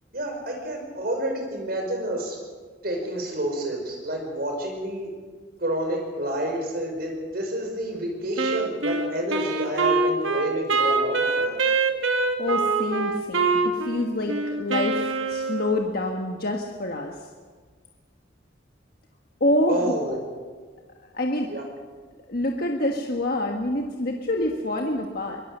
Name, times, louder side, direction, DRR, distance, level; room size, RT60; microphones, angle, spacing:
voice 1, 0.1-2.4 2.8-5.1 5.6-11.6 19.7-20.3 21.5-21.6, right 1 dB, 50° right, 2 dB, 5.3 m, -29 dB
Wind instrument woodwind instrument, 8.4-15.9, right 4 dB, 85° right, 1.8 m, -24 dB
voice 2, 12.4-17.2 19.4-20.0 21.1-21.5 22.3-25.4, left 1 dB, 50° left, 2 dB, 1.5 m, -26 dB
23.5 x 19.5 x 6.8 m, 1.5 s
head